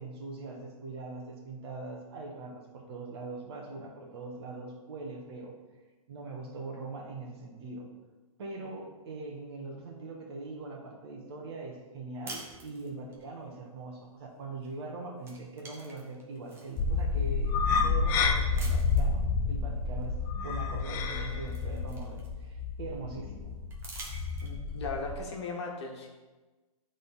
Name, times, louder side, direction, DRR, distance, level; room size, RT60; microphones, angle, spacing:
voice 1, 0.0-5.5 6.1-7.9 8.4-20.2 20.4-23.5, right 3 dB, 45° right, 1 dB, 1.5 m, -42 dB
sound 1, 12.2-13.2 14.6-14.9 15.2-16.8 17.4-17.5 18.5-19.2 20.6-20.7 21.1-22.6 23.7-24.8, right 2 dB, 15° right, 0.9 m, -47 dB
sound 2, 16.8-25.2, left 4 dB, 15° left, 0.3 m, -30 dB
voice 2, 24.4-26.1, left 3 dB, 50° left, 1 dB, 1.4 m, -37 dB
9.4 x 3.9 x 4.1 m, 1.2 s
hypercardioid pair, 150°, 19 cm